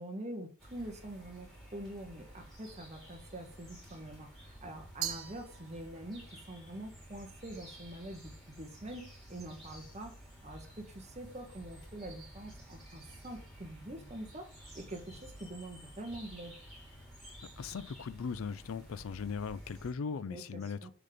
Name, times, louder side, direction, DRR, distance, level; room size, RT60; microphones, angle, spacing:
voice 1, 0.0-10.1 10.4-14.5 14.7-16.6 20.3-20.9, right 1 dB, 30° right, 1.3 m, -45 dB
sound 1, 0.6-19.9, equal, ahead, 2.6 m, -52 dB
Glass, 5.0-6.2, right 10 dB, 75° right, 0.9 m, -41 dB
voice 2, 17.6-20.9, left 5 dB, 75° left, 0.4 m, -39 dB
6.5 x 3.8 x 5.0 m
head